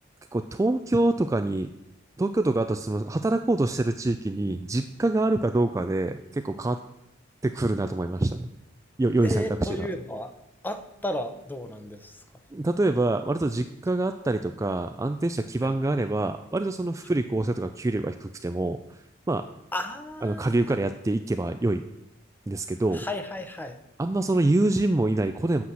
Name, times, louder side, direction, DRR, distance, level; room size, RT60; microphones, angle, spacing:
voice 1, 0.3-1.7 2.2-6.8 7.4-8.5 9.0-9.9 12.5-19.0 19.3-19.5 20.2-21.8 22.5-23.0 24.0-25.6, right 2 dB, 15° right, 7 dB, 0.3 m, -25 dB
voice 2, 9.2-10.4 10.6-12.2 15.6-15.7 19.7-20.6 22.9-23.8, left 1 dB, 10° left, 8 dB, 0.7 m, -33 dB
8.4 x 5.8 x 7.6 m, 0.86 s
head